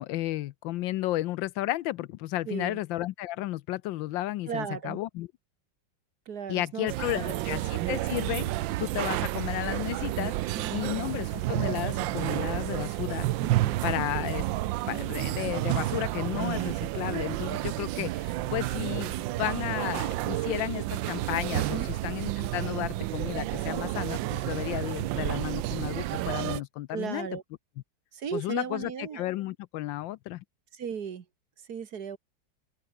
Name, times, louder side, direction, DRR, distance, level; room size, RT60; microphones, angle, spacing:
voice 1, 0.0-5.3 6.5-8.5 8.8-13.3 13.8-14.5 14.8-27.3 28.3-30.4, left 15 dB, 80° left, 1.3 m, -33 dB
voice 2, 2.5-2.8 4.5-5.0 6.3-7.3 10.5-10.8 13.4-13.8 21.5-21.9 26.9-27.4 28.1-29.3 30.7-31.3 31.7-32.2, right 7 dB, 55° right, 1.8 m, -36 dB
sound 1, 6.9-26.6, right 15 dB, 75° right, 1.3 m, -30 dB
open air
omnidirectional pair, 2.1 m